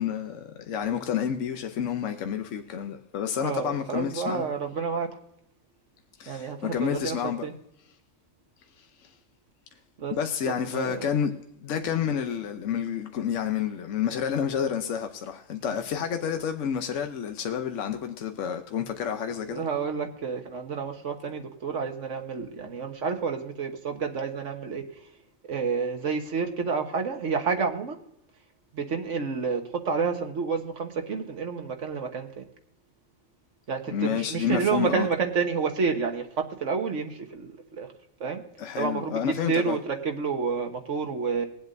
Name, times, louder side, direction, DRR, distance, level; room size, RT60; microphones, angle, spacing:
voice 1, 0.0-4.4 6.2-7.5 8.8-9.1 10.1-11.3 11.6-19.6 33.9-35.1 38.6-39.8, left 8 dB, 65° left, 1.1 m, -29 dB
voice 2, 3.4-5.1 6.3-7.5 10.0-10.1 10.5-11.0 11.8-12.0 18.8-19.0 19.4-24.8 25.5-28.0 28.7-32.5 33.7-36.3 36.6-37.9 38.2-38.4 38.8-41.5, right 5 dB, 65° right, 1.6 m, -29 dB
21.5 x 7.9 x 2.6 m
omnidirectional pair, 1.4 m